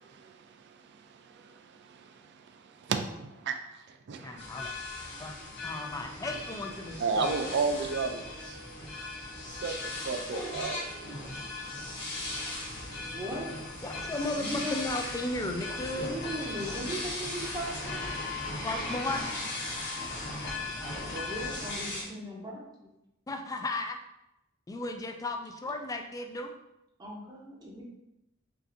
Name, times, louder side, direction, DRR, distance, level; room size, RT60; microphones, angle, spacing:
voice 1, 0.0-4.4 7.0-8.6 9.5-10.8, right 4 dB, 55° right, 6 dB, 0.4 m, -34 dB
voice 2, 4.2-4.7 5.2-5.4 5.6-7.9 13.8-16.1 18.6-19.3 23.3-24.0 24.7-26.5, left 2 dB, 15° left, 4 dB, 0.3 m, -35 dB
sound 1, 4.4-22.0, left 2 dB, 60° left, 1.1 m, -37 dB
voice 3, 12.9-13.6 14.3-14.8 15.8-18.1 18.6-18.7 21.0-22.9 27.0-27.8, equal, 20° right, -3 dB, 0.7 m, -38 dB
5.6 x 2.6 x 2.5 m, 0.88 s
head